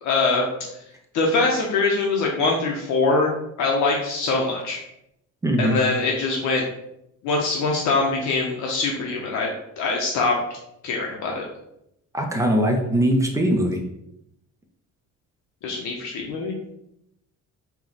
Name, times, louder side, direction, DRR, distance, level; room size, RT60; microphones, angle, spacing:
voice 1, 0.0-0.5 1.1-3.3 3.6-4.8 5.6-6.7 7.2-9.5 9.8-10.4 10.8-11.4 15.6-16.5, left 3 dB, 75° left, -1 dB, 0.7 m, -23 dB
voice 2, 5.4-5.8 12.1-13.8, right 1 dB, 10° right, 1 dB, 0.4 m, -21 dB
4.4 x 2.1 x 3.9 m, 0.80 s
cardioid pair, 170°, 29 cm